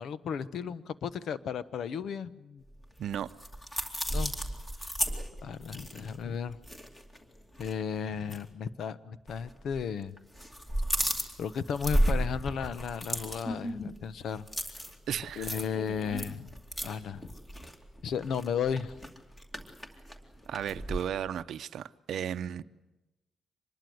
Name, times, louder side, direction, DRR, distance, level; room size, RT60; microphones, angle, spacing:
voice 1, 0.0-2.6 4.1-4.3 5.4-6.6 7.6-10.1 11.4-14.5 15.4-16.5 16.8-17.3 18.0-18.9, left 7 dB, 60° left, 15 dB, 1.0 m, -34 dB
sound 1, 2.8-7.2 7.5-7.7 8.2-8.4 9.3-9.9 10.2-21.0, equal, 15° left, 2.5 m, -34 dB
voice 2, 3.0-3.3 15.1-15.5 20.5-22.6, right 9 dB, 60° right, 12 dB, 0.8 m, -35 dB
25.0 x 21.5 x 7.9 m, 1.0 s
wide cardioid pair, 170°, 0 cm